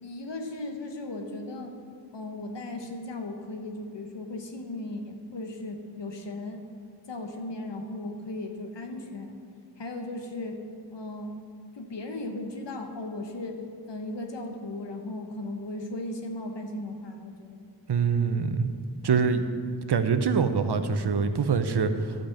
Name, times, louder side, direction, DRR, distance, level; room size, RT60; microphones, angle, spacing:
voice 1, 0.0-1.8 2.1-6.6 7.1-9.4 9.8-10.6 10.9-11.3 11.7-13.6 13.9-17.6, left 2 dB, 75° left, 4 dB, 1.2 m, -36 dB
voice 2, 17.9-18.7 19.0-19.4 19.9-22.3, right 5 dB, 65° right, 9 dB, 0.8 m, -24 dB
12.5 x 5.2 x 7.5 m, 2.4 s
wide cardioid pair, 90°, 43 cm